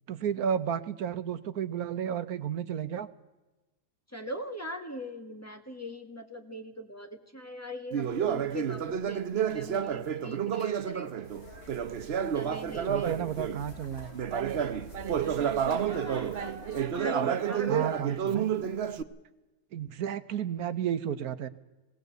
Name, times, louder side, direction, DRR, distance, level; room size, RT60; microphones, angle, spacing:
voice 1, 0.1-3.1 12.9-14.1 17.7-18.5 19.7-21.5, right 8 dB, 80° right, 14 dB, 1.4 m, -32 dB
voice 2, 4.1-11.1 12.3-13.1 15.7-16.4 16.9-18.4, equal, 10° left, 6 dB, 1.6 m, -41 dB
Conversation, 7.9-13.7 14.1-19.0, right 8 dB, 50° right, 0.9 m, -30 dB
sound 1, 11.2-16.9, equal, 65° left, 5.4 m, -47 dB
19.5 x 17.5 x 8.0 m, 1.1 s
omnidirectional pair, 1.6 m